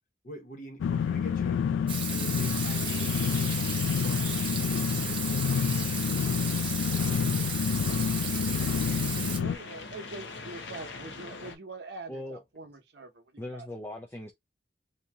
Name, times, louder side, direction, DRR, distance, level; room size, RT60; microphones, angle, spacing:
voice 1, 0.2-1.6 2.1-4.5 5.0-6.4 6.9-7.5, equal, 45° left, 1.0 m, -46 dB
sound 1, 0.8-9.6, left 7 dB, 85° left, 0.3 m, -28 dB
Water tap faucet / Sink (filling or washing), 1.9-9.4, right 6 dB, 25° right, 0.7 m, -35 dB
sound 2, 2.4-11.6, left 4 dB, 70° left, 0.7 m, -44 dB
voice 2, 9.4-13.7, right 3 dB, 65° right, 0.8 m, -44 dB
voice 3, 12.1-12.4 13.4-14.3, left 1 dB, 10° left, 0.4 m, -39 dB
2.8 x 2.7 x 3.4 m
head